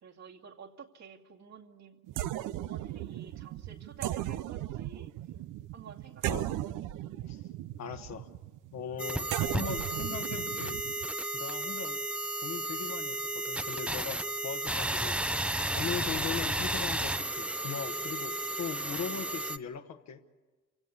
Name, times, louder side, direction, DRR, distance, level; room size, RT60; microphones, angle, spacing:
voice 1, 0.0-2.0 2.6-5.1 5.7-6.6, right 7 dB, 60° right, 1 dB, 2.4 m, -51 dB
sound 1, 2.1-11.1, right 14 dB, 90° right, 0.7 m, -37 dB
voice 2, 7.8-8.3 8.7-10.8 11.3-12.1 12.4-20.2, left 7 dB, 65° left, 5 dB, 1.4 m, -40 dB
sound 2, 9.0-19.6, right 1 dB, 5° right, 0.7 m, -33 dB
27.0 x 17.0 x 9.5 m, 1.3 s
cardioid pair, 90°, 30 cm